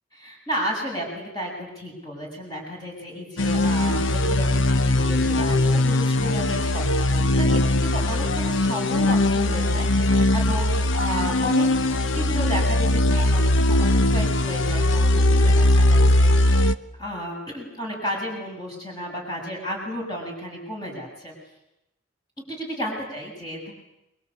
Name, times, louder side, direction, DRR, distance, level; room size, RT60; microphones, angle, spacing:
voice 1, 0.1-11.7 12.1-16.7 17.0-21.3 22.5-23.7, equal, 20° left, -1 dB, 7.3 m, -33 dB
sound 1, 3.4-16.7, left 1 dB, 75° left, 1.0 m, -20 dB
27.0 x 23.0 x 8.5 m, 0.88 s
head